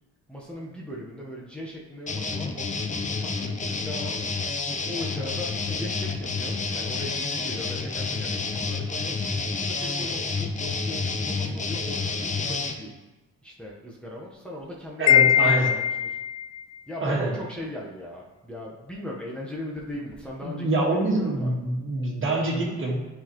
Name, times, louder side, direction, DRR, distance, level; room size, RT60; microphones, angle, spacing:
voice 1, 0.3-4.2 4.9-9.2 9.6-12.9 13.4-16.2 16.9-20.7 21.2-21.5, left 1 dB, 5° left, -4 dB, 1.1 m, -38 dB
sound 1, 2.1-12.7, left 4 dB, 25° left, 0.7 m, -29 dB
voice 2, 15.0-15.8 17.0-17.4 20.4-23.0, right 2 dB, 40° right, -2 dB, 1.7 m, -25 dB
Wind chime, 15.1-16.5, left 9 dB, 65° left, 0.4 m, -20 dB
9.3 x 4.2 x 3.1 m, 1.2 s
cardioid pair, 90°, 30 cm